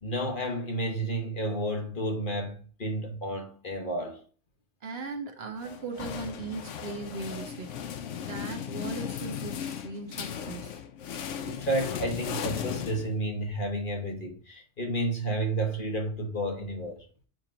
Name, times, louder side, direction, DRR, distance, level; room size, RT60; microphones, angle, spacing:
voice 1, 0.0-4.2 7.3-7.4 11.4-17.0, right 1 dB, 45° left, 1.3 m, -31 dB
voice 2, 4.8-10.8, right 3 dB, 60° right, 1.2 m, -39 dB
sound 1, 5.6-13.5, left 8 dB, 90° left, 1.0 m, -36 dB
7.7 x 3.0 x 5.0 m
omnidirectional pair, 1.2 m